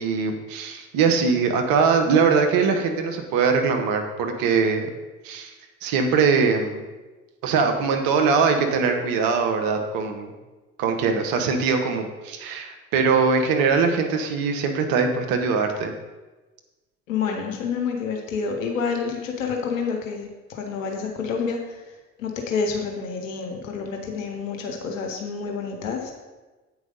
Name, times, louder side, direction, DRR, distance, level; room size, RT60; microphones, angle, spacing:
voice 1, 0.0-4.9 5.2-5.5 5.8-6.8 7.4-10.3 10.8-15.9, right 5 dB, 65° right, 5 dB, 1.2 m, -22 dB
voice 2, 17.1-21.9 22.2-26.1, left 5 dB, 85° left, 2 dB, 0.9 m, -28 dB
8.3 x 4.8 x 5.2 m, 1.2 s
hypercardioid pair, 55°, 39 cm